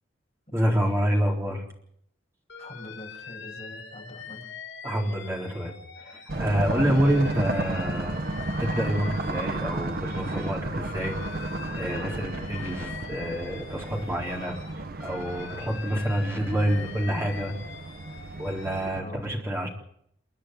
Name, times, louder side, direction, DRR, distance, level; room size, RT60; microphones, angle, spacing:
voice 1, 0.5-1.6 4.8-5.8 6.0-8.2 8.6-11.2 11.8-14.5 15.0-17.5 18.4-19.7, equal, 15° right, -1 dB, 3.9 m, -27 dB
Alarm, 2.5-6.4 6.7-10.5 10.8-14.7 15.0-18.9, left 6 dB, 85° left, 5.6 m, -43 dB
voice 2, 2.6-4.5 19.0-19.3, left 1 dB, 30° left, 0 dB, 6.0 m, -43 dB
sound 1, 6.3-19.0, right 2 dB, 50° right, 0.8 m, -33 dB
29.5 x 10.0 x 9.2 m, 0.70 s
head